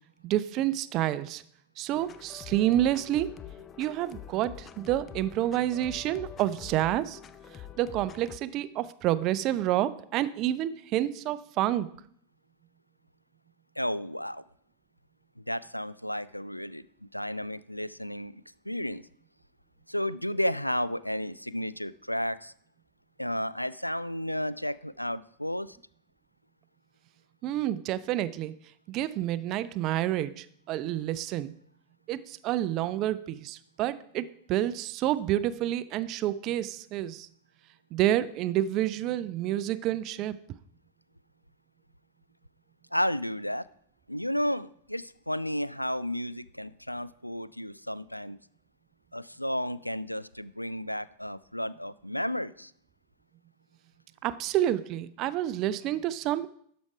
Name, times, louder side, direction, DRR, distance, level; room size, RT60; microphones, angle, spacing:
voice 1, 0.2-1.4 1.8-3.3 3.8-7.2 7.8-11.9 27.4-28.5 28.9-31.5 32.1-37.3 37.9-40.3 54.2-56.5, right 13 dB, 40° right, 15 dB, 0.5 m, -29 dB
sound 1, 1.9-8.4, left 9 dB, 25° left, 0.5 m, -46 dB
voice 2, 13.8-14.4 15.4-16.8 17.1-19.0 19.9-22.5 23.2-25.8 42.9-43.7 44.1-48.4 49.1-52.7, equal, 90° left, 18 dB, 0.3 m, -32 dB
12.5 x 5.2 x 4.8 m, 0.65 s
figure-of-eight pair, 90°, 0 cm